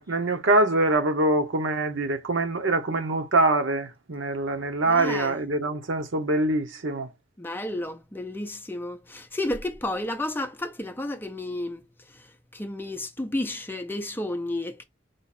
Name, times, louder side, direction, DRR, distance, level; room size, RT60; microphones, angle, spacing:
voice 1, 0.0-7.1, right 2 dB, 70° right, 0.8 m, -24 dB
voice 2, 4.9-5.3 7.4-11.8 12.1-12.3 12.5-14.8, left 1 dB, 10° left, 0.6 m, -32 dB
4.8 x 2.4 x 4.2 m
head